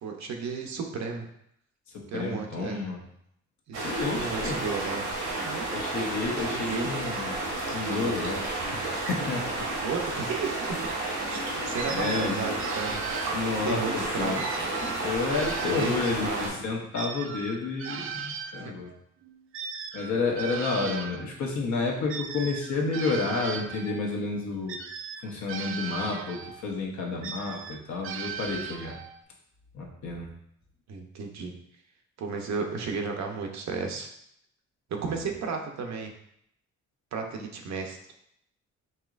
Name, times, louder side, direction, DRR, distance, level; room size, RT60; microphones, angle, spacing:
voice 1, 0.0-1.3 2.1-2.8 3.7-5.1 5.4-5.7 6.5-6.9 9.8-10.8 11.3-13.0 13.6-14.6 15.6-15.9 16.2-16.7 18.6-18.7 20.8-20.9 30.9-31.6 32.2-34.1 34.9-36.1 37.1-38.0, right 5 dB, 65° right, 3 dB, 0.8 m, -33 dB
voice 2, 1.9-3.0 3.8-4.6 5.7-7.4 7.7-9.7 11.9-12.4 13.3-14.4 15.0-18.9 19.9-24.8 25.2-29.0 29.7-30.3 34.9-35.3, left 3 dB, 70° left, 0 dB, 1.1 m, -30 dB
sound 1, 3.7-16.5, right 2 dB, 85° right, 1.5 m, -31 dB
sound 2, 11.8-13.8 14.4-16.4 16.9-21.3 22.1-24.1 24.7-26.7 27.2-29.2, right 7 dB, 45° right, 0.4 m, -38 dB
5.4 x 3.0 x 2.5 m, 0.73 s
cardioid pair, 90°, 30 cm